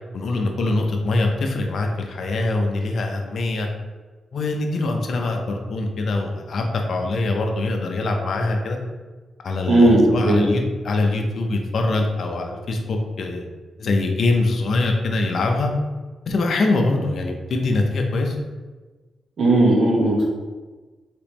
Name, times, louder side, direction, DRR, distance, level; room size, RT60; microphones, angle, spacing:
voice 1, 0.1-3.7 4.3-8.8 9.4-13.5 13.8-15.7 16.3-18.4, left 2 dB, 65° left, 2 dB, 0.5 m, -23 dB
voice 2, 9.7-10.4 19.4-20.3, right 1 dB, 60° right, -4 dB, 1.2 m, -16 dB
3.4 x 3.0 x 3.0 m, 1.3 s
cardioid pair, 65°, 0 cm